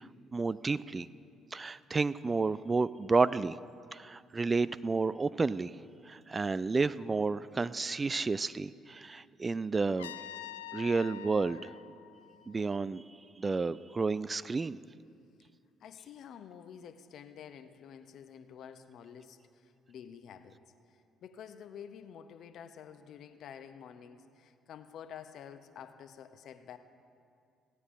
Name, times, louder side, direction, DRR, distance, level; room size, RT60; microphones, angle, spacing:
voice 1, 0.3-1.1 1.5-3.6 3.9-5.8 6.1-10.1 10.7-11.7 12.5-13.0 13.4-14.8, right 4 dB, 30° right, 18 dB, 0.3 m, -31 dB
Trumpet, 10.0-12.9, left 12 dB, 85° left, 0.3 m, -46 dB
voice 2, 15.8-20.6 20.9-26.8, left 8 dB, 60° left, 10 dB, 0.7 m, -49 dB
16.0 x 9.8 x 5.2 m, 2.4 s
hypercardioid pair, 45°, 0 cm